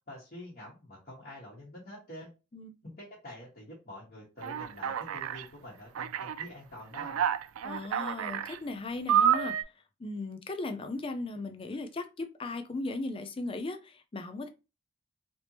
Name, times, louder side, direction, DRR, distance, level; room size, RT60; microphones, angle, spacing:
voice 1, 0.0-2.3 2.8-7.3, left 1 dB, 45° left, 1.4 m, -47 dB
Alarm, 4.4-5.4 5.9-6.4 6.9-8.6 9.1-9.6, right 9 dB, 80° right, 0.3 m, -29 dB
voice 2, 7.6-9.6 10.0-14.5, left 2 dB, 25° left, 0.4 m, -37 dB
3.3 x 2.9 x 2.9 m
head